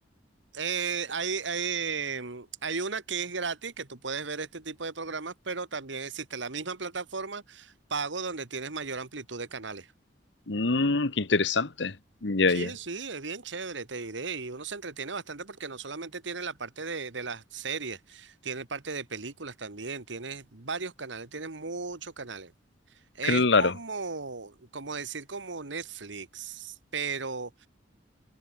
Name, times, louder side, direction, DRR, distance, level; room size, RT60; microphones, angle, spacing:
voice 1, 0.5-9.9 12.5-22.5 23.1-27.7, right 5 dB, 75° right, 1.8 m, -35 dB
voice 2, 10.5-11.9 12.2-12.7 23.3-23.7, left 3 dB, 70° left, 1.3 m, -24 dB
head